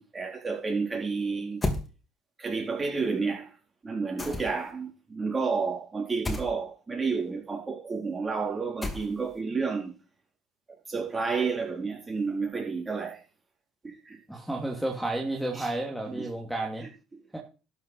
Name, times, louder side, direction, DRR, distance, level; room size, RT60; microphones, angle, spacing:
voice 1, 0.0-1.6 2.4-3.5 3.8-9.9 10.9-13.2 13.8-14.2 15.5-15.7 16.1-16.3, right 4 dB, 25° right, 4.2 m, -30 dB
sound 1, 1.6-1.9 4.2-4.7 6.2-6.5 8.8-9.3, left 2 dB, 20° left, 2.8 m, -31 dB
voice 2, 14.3-16.9 17.3-17.4, right 2 dB, ahead, 2.6 m, -31 dB
12.0 x 6.1 x 5.7 m
supercardioid pair, 75°, 0 cm